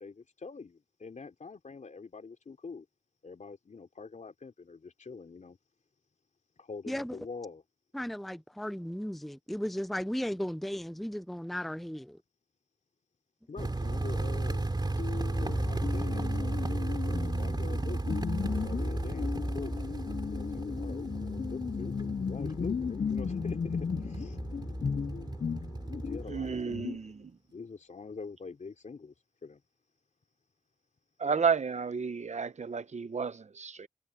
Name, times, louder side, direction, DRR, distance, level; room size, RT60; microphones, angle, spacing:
voice 1, 0.0-2.9 3.2-5.6 6.6-7.6 13.5-14.7 15.4-18.1 18.6-19.8 20.2-24.4 25.9-26.9 27.5-29.1 29.4-29.6, left 4 dB, 70° left, 3.8 m, -45 dB
voice 2, 6.9-7.2 7.9-12.2, equal, ahead, 0.5 m, -35 dB
sound 1, 13.6-26.8, right 2 dB, 35° right, 3.1 m, -34 dB
sound 2, 14.9-15.5 15.8-26.3 26.7-27.0, left 6 dB, 55° left, 0.4 m, -36 dB
Keyboard (musical), 15.3-17.0 18.4-26.8, left 2 dB, 30° left, 6.3 m, -42 dB
voice 3, 26.3-27.3 31.2-33.9, right 5 dB, 65° right, 0.9 m, -32 dB
wide cardioid pair, 65°, 13 cm